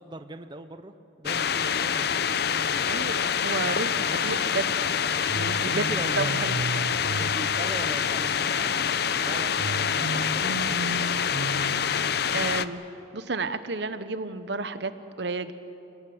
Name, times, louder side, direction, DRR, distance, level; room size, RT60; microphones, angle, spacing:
voice 1, 0.0-2.9 4.0-4.2 5.7-6.4 7.2-11.0, right 1 dB, 25° right, 8 dB, 0.7 m, -40 dB
sound 1, 1.3-12.7, left 7 dB, 55° left, 0.6 m, -26 dB
voice 2, 2.9-4.9 5.3-6.5 12.3-12.8 13.1-14.9 15.2-15.5, right 3 dB, 65° right, 12 dB, 1.0 m, -31 dB
sound 2, 5.3-8.4 9.6-12.5, right 3 dB, 90° right, 0.7 m, -35 dB
28.0 x 19.0 x 7.9 m, 2.9 s
head